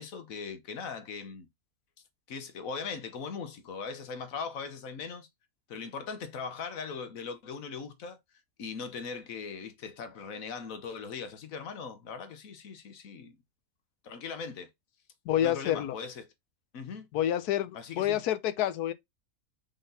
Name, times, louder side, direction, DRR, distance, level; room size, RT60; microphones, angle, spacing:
voice 1, 0.0-1.5 2.3-5.3 5.7-8.2 8.6-13.3 14.0-14.7 15.4-16.2 16.7-17.1 17.7-18.2, left 5 dB, 65° left, 1.3 m, -39 dB
voice 2, 15.2-15.9 17.1-18.9, left 11 dB, 85° left, 1.2 m, -28 dB
5.4 x 3.8 x 2.6 m
omnidirectional pair, 1.6 m